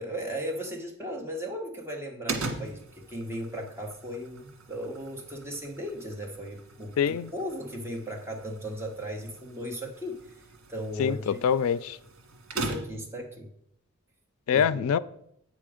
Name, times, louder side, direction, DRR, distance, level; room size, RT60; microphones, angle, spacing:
voice 1, 0.0-11.4 12.5-13.5 14.5-14.8, equal, 10° right, 0 dB, 1.2 m, -37 dB
sound 1, 2.3-13.2, right 3 dB, 85° right, 1.6 m, -40 dB
voice 2, 7.0-7.3 11.0-12.0 14.5-15.0, left 7 dB, 85° left, 17 dB, 0.3 m, -25 dB
8.3 x 6.1 x 5.0 m, 0.74 s
head